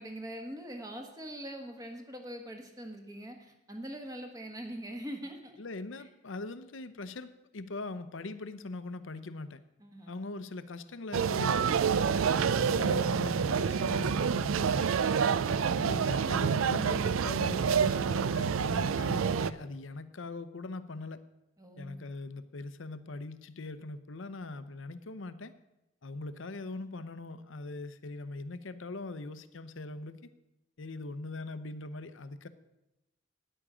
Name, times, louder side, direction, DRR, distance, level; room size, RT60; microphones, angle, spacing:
voice 1, 0.0-5.6 9.8-10.1 21.6-22.1, equal, 15° right, 4 dB, 1.4 m, -43 dB
voice 2, 5.6-9.6 10.1-14.9 15.4-21.2 21.8-25.5 26.0-30.3 30.8-32.5, left 3 dB, 75° left, 12 dB, 0.7 m, -41 dB
sound 1, 11.1-19.5, right 6 dB, 90° right, 0.4 m, -28 dB
13.0 x 10.0 x 5.0 m, 0.93 s
head